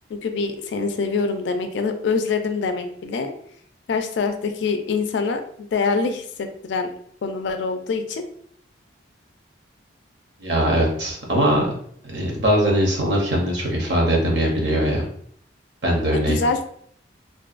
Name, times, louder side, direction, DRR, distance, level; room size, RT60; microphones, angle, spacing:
voice 1, 0.1-3.3 3.9-6.9 7.2-8.2 16.1-16.6, left 4 dB, 65° left, 6 dB, 0.3 m, -25 dB
voice 2, 10.4-11.8 12.0-15.1 15.8-16.4, equal, 65° right, -1 dB, 0.7 m, -21 dB
2.5 x 2.1 x 2.4 m, 0.63 s
head